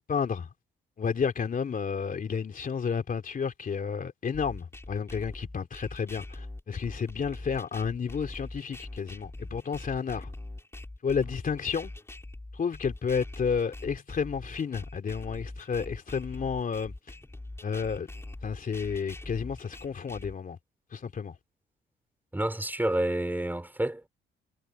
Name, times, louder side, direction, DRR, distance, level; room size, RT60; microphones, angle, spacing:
voice 1, 0.1-0.5 1.0-10.3 11.0-11.9 12.5-16.9 17.6-18.1 18.4-20.6 20.9-21.3, left 6 dB, 45° left, 3.0 m, -31 dB
sound 1, 4.3-20.3, left 2 dB, 15° left, 4.4 m, -42 dB
voice 2, 22.3-24.1, right 1 dB, 10° right, 4.3 m, -29 dB
cardioid pair, 90°, 20 cm